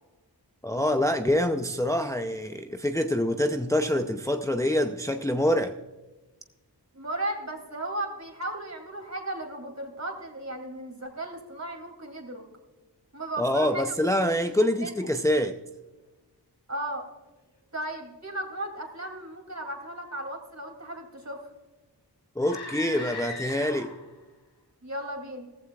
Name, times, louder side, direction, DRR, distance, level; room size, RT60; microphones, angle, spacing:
voice 1, 0.6-5.8 13.4-15.6 22.4-23.9, left 1 dB, 10° left, 0.6 m, -25 dB
voice 2, 6.9-12.4 13.1-13.9 14.3-14.4 14.8-14.9 16.7-17.1 17.7-21.4 24.8-25.5, right 1 dB, 45° right, 2.9 m, -35 dB
sound 1, 22.4-24.2, left 3 dB, 75° left, 2.1 m, -38 dB
16.0 x 14.5 x 2.4 m
wide cardioid pair, 55°, 40 cm